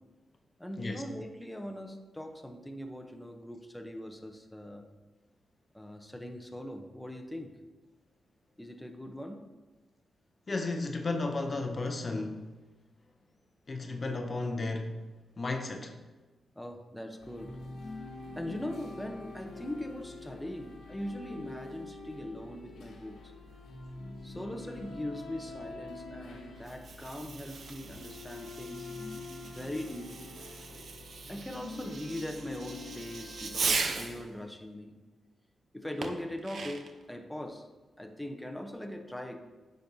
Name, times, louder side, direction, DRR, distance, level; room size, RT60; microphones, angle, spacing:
voice 1, 0.6-4.9 5.7-7.6 8.6-9.5 16.6-17.6 18.3-23.3 24.2-28.9 29.5-30.4 31.3-35.0 35.7-37.7 38.0-39.4, left 1 dB, 5° left, 0.8 m, -41 dB
voice 2, 10.5-12.5 13.7-15.0 15.4-16.0, left 3 dB, 40° left, 0.7 m, -33 dB
sound 1, 17.2-34.2, left 3 dB, 85° left, 1.3 m, -46 dB
Fireworks, 26.6-34.2 36.0-37.0, right 4 dB, 65° right, 0.7 m, -38 dB
10.0 x 5.2 x 2.8 m
cardioid pair, 65°, 0 cm